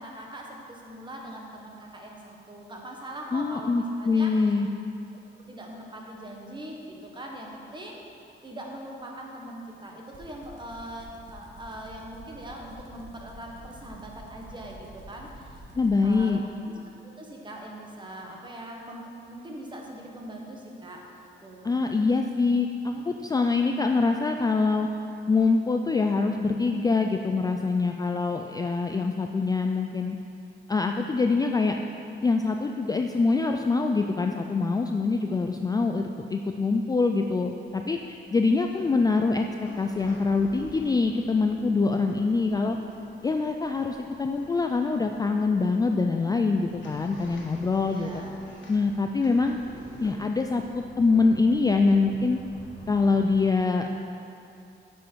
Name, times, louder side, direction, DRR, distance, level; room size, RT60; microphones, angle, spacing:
voice 1, 0.0-4.4 5.5-8.0 8.4-15.6 16.0-16.4 16.7-16.8 17.2-21.1 21.4-21.8 38.5-38.9 47.8-48.3, right 1 dB, 25° right, 0 dB, 1.4 m, -41 dB
voice 2, 3.3-4.7 15.8-16.4 21.6-24.9 25.3-30.2 30.7-31.8 32.2-39.5 39.8-42.8 43.2-48.1 48.7-49.6 50.0-52.4 52.9-54.0, left 4 dB, 20° left, 4 dB, 0.3 m, -24 dB
sound 1, 10.1-16.3, right 3 dB, 45° right, 1.8 m, -49 dB
sound 2, 37.3-53.4, left 1 dB, 75° left, 1.7 m, -49 dB
9.4 x 6.3 x 4.6 m, 2.7 s
cardioid pair, 115°, 20 cm